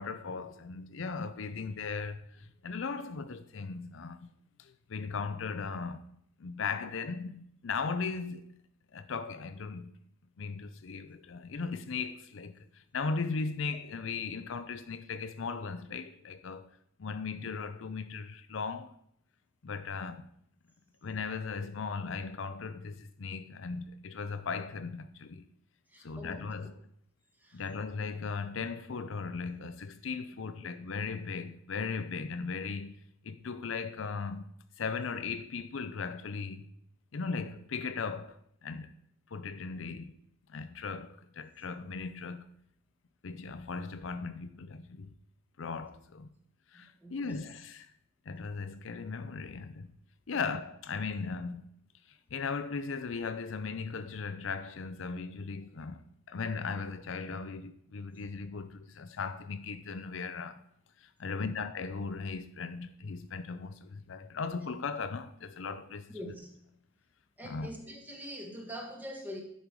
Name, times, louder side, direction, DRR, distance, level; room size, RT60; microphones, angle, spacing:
voice 1, 0.0-4.3 4.6-6.0 6.4-8.4 8.9-9.9 10.4-16.7 17.0-18.9 19.6-20.3 21.0-25.4 26.0-26.8 27.5-32.9 33.2-34.5 34.8-36.7 37.1-38.9 39.3-40.1 40.5-42.5 43.2-45.1 45.6-46.3 46.7-47.9 48.3-49.9 50.3-51.7 52.3-60.6 61.0-66.2 67.4-67.7, left 4 dB, 70° left, 0.5 m, -37 dB
voice 2, 25.9-26.4 27.4-27.6 46.7-47.5 50.3-50.5 61.2-61.5 66.1-66.6 67.4-69.4, equal, 10° right, 1.5 m, -44 dB
10.5 x 5.3 x 4.7 m
head